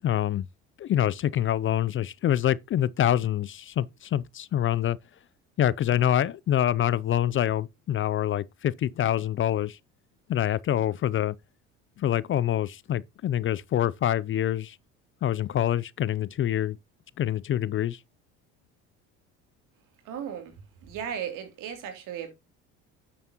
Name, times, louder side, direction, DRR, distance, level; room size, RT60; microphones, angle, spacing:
voice 1, 0.0-0.5 0.8-5.0 5.6-9.8 10.3-11.3 12.0-14.8 15.2-16.8 17.2-18.0, left 11 dB, 40° left, 0.5 m, -26 dB
voice 2, 20.0-22.3, right 8 dB, 70° right, 3.0 m, -36 dB
10.5 x 7.3 x 2.9 m
supercardioid pair, 85°, 33 cm